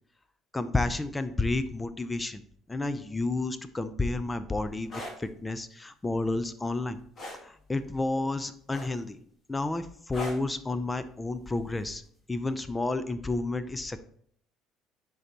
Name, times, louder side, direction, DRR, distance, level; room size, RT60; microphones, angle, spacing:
voice 1, 0.5-2.4 2.7-7.0 7.4-9.2 9.5-12.0 12.3-14.0, left 2 dB, 15° left, 12 dB, 0.6 m, -31 dB
sound 1, 4.8-5.2 7.2-7.4 8.7-9.2 10.1-10.5 11.9-12.1, left 1 dB, 35° left, 2.5 m, -38 dB
10.5 x 4.0 x 3.0 m, 0.63 s
hypercardioid pair, 60°, 0 cm